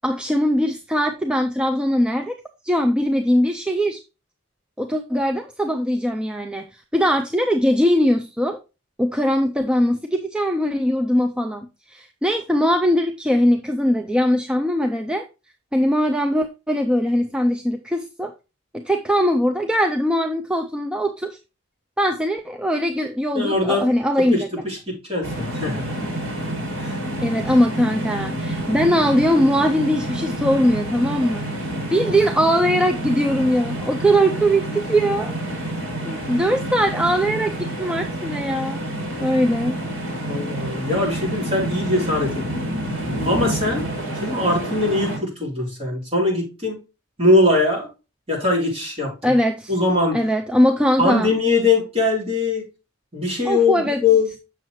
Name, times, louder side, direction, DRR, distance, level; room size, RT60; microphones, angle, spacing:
voice 1, 0.0-2.4 2.6-4.0 4.8-8.6 9.0-15.2 15.7-18.3 18.7-21.4 22.0-24.5 27.2-35.4 36.1-38.9 39.2-39.8 49.2-49.7 50.1-51.3 53.5-54.0, equal, 5° right, 5 dB, 0.4 m, -21 dB
voice 2, 23.3-23.9 24.3-26.0 26.8-27.0 40.3-43.8 44.2-46.8 47.2-47.9 48.3-49.4 49.7-50.2 51.0-52.6 53.1-54.3, left 2 dB, 30° right, -3 dB, 3.3 m, -21 dB
sound 1, 25.2-45.2, right 1 dB, 70° right, 2.7 m, -28 dB
7.3 x 6.5 x 3.0 m, 0.28 s
head